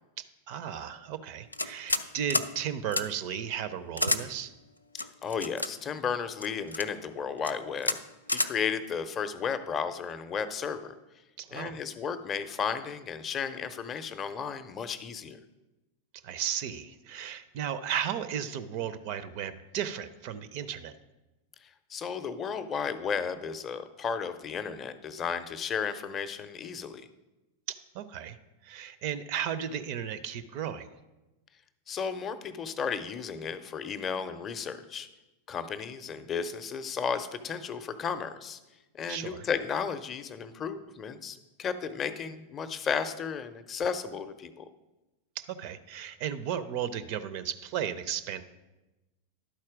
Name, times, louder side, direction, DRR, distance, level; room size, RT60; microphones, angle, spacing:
voice 1, 0.2-4.5 11.4-11.8 16.2-20.9 27.7-28.4 28.6-30.9 39.1-39.5 45.4-48.4, right 9 dB, 45° right, 14 dB, 0.4 m, -35 dB
sound 1, 1.5-2.1 2.3-2.5 2.9-3.0 4.0-4.2 5.0-5.7 6.4-6.9 7.4-7.5 7.8-8.0 8.3-8.5, left 2 dB, 85° left, 0.3 m, -29 dB
voice 2, 4.9-8.0 8.3-10.9 11.5-15.4 21.6-27.0 31.9-35.1 35.5-38.6 38.9-44.6, left 6 dB, 25° left, 10 dB, 0.5 m, -34 dB
11.0 x 4.3 x 4.8 m, 1.1 s
figure-of-eight pair, 90°, 0 cm